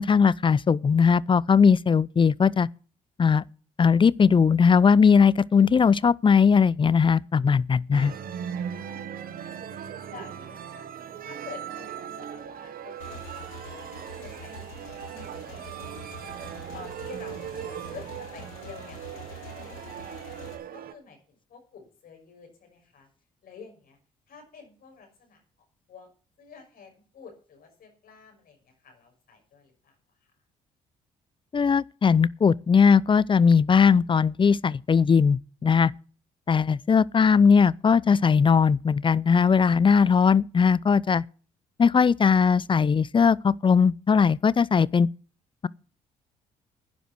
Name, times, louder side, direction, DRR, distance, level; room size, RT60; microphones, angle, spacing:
voice 1, 0.0-2.7 3.2-3.4 3.8-8.1 31.5-35.9 36.5-41.2 41.8-45.1, left 6 dB, 30° left, 0.5 m, -19 dB
sound 1, 7.9-20.9, right 8 dB, 60° right, 1.3 m, -39 dB
voice 2, 9.2-9.7 10.1-10.9 11.2-20.3 20.7-23.1 23.4-24.0 24.3-25.4 25.9-26.1 26.4-29.9, left 5 dB, 60° left, 6.0 m, -49 dB
Motorcycle / Engine, 13.0-20.6, left 1 dB, 85° left, 2.3 m, -45 dB
11.5 x 10.0 x 6.1 m
hypercardioid pair, 45°, 17 cm